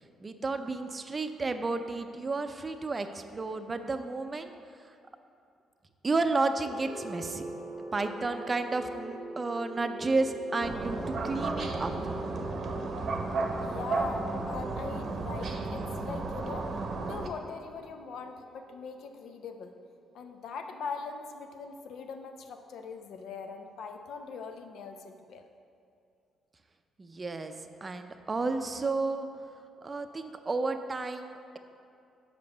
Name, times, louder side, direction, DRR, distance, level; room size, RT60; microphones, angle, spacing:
voice 1, 0.2-4.5 6.0-7.4 7.9-12.1 27.0-27.5 27.8-29.3 29.8-31.6, right 3 dB, 30° right, 7 dB, 0.5 m, -32 dB
sound 1, 6.4-20.3, right 1 dB, 15° right, 1.0 m, -44 dB
sound 2, 10.6-17.3, right 3 dB, 55° right, 0.8 m, -33 dB
voice 2, 13.6-16.7 17.0-19.8 20.1-25.5, left 5 dB, 75° left, 6 dB, 0.6 m, -41 dB
5.8 x 5.2 x 6.8 m, 2.5 s
cardioid pair, 90°, 0 cm